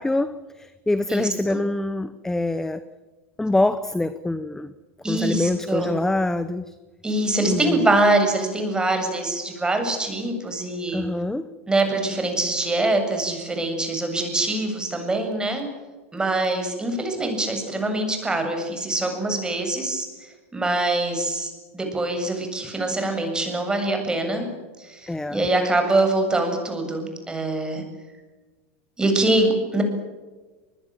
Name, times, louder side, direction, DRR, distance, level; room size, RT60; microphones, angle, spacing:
voice 1, 0.0-2.8 3.4-4.7 5.1-6.7 7.5-7.8 10.9-11.5 25.1-25.5, left 2 dB, 5° left, 14 dB, 1.0 m, -25 dB
voice 2, 1.1-1.6 5.0-5.9 7.0-11.1 11.7-15.7 16.1-20.1 20.5-24.5 24.8-27.8 29.0-29.8, right 2 dB, 10° right, 5 dB, 7.6 m, -24 dB
25.0 x 21.0 x 9.0 m, 1.3 s
hypercardioid pair, 115°, 7 cm